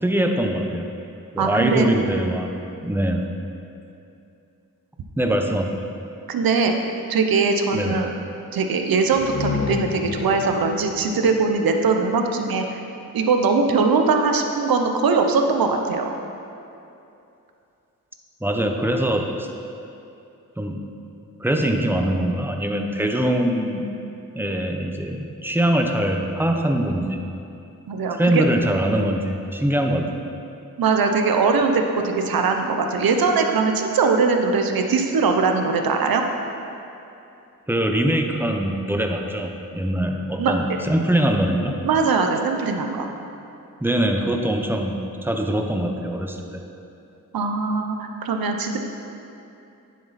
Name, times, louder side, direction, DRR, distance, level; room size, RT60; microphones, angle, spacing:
voice 1, 0.0-0.9 1.3-2.5 2.8-3.2 5.2-5.8 7.7-8.0 18.4-19.5 20.6-20.8 21.4-23.8 24.3-27.2 28.1-30.1 37.7-41.8 43.8-46.6, right 1 dB, 5° right, 3 dB, 1.0 m, -23 dB
voice 2, 1.4-1.9 6.3-6.7 7.1-8.1 8.5-12.8 13.1-16.2 27.9-28.4 30.8-36.2 40.4-40.5 41.8-43.1 47.3-48.8, right 4 dB, 80° right, 4 dB, 0.9 m, -21 dB
sound 1, 9.1-12.8, left 6 dB, 35° left, 0.4 m, -31 dB
9.9 x 7.4 x 4.2 m, 2.7 s
cardioid pair, 55°, 35 cm